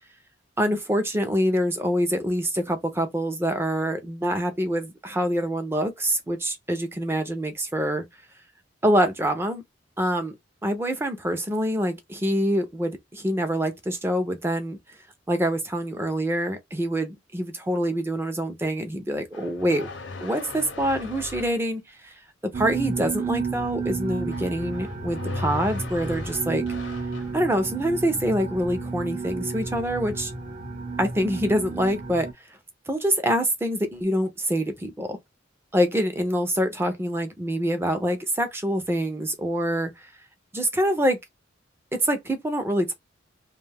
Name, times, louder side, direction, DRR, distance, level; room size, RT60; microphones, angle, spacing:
voice 1, 0.6-8.0 8.8-9.6 10.0-10.3 10.6-14.8 15.3-19.9 20.2-22.1 22.5-26.7 27.3-30.3 31.0-32.3 32.9-35.2 35.7-40.1 40.5-41.2 41.9-42.9, equal, 10° right, 0.4 m, -25 dB
sound 1, 19.3-21.6 24.3-27.4, left 2 dB, 65° left, 0.6 m, -37 dB
sound 2, 22.5-32.3, right 4 dB, 45° right, 0.9 m, -32 dB
2.4 x 2.3 x 3.3 m
head